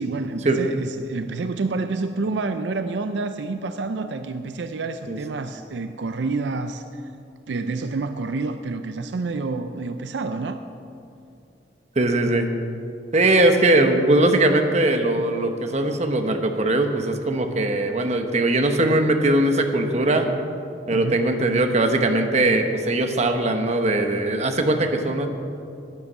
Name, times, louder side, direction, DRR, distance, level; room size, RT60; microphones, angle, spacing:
voice 1, 0.0-6.8 7.5-10.6 20.9-21.2, right 3 dB, 75° right, 9 dB, 0.5 m, -28 dB
voice 2, 12.0-12.5 13.1-20.3 20.9-25.3, right 2 dB, 40° right, 5 dB, 1.0 m, -20 dB
10.5 x 9.6 x 7.3 m, 2.6 s
head